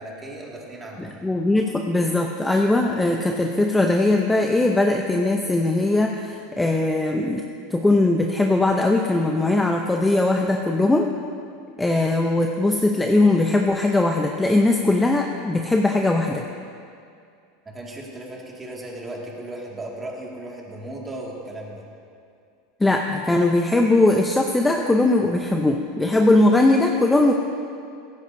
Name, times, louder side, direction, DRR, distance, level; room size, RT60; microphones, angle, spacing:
voice 1, 0.0-1.3 17.7-21.8, right 1 dB, 15° right, -2 dB, 2.0 m, -36 dB
voice 2, 1.0-7.4 7.7-11.1 11.8-16.4 22.8-27.3, left 2 dB, 5° left, 2 dB, 0.6 m, -20 dB
16.5 x 15.0 x 2.6 m, 2.4 s
supercardioid pair, 155°, 0 cm